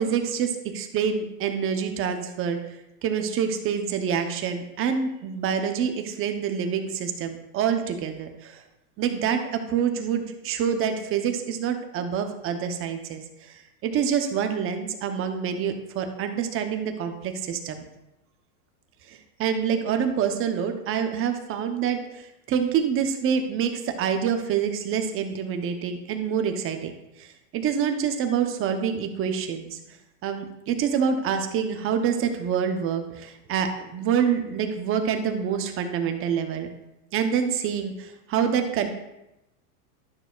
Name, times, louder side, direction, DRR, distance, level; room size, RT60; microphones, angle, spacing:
voice 1, 0.0-8.6 9.0-17.8 19.1-26.9 27.2-29.8 30.2-36.7 37.1-38.9, right 7 dB, 25° right, 6 dB, 0.8 m, -26 dB
12.0 x 6.3 x 2.4 m, 0.90 s
supercardioid pair, 135°, 47 cm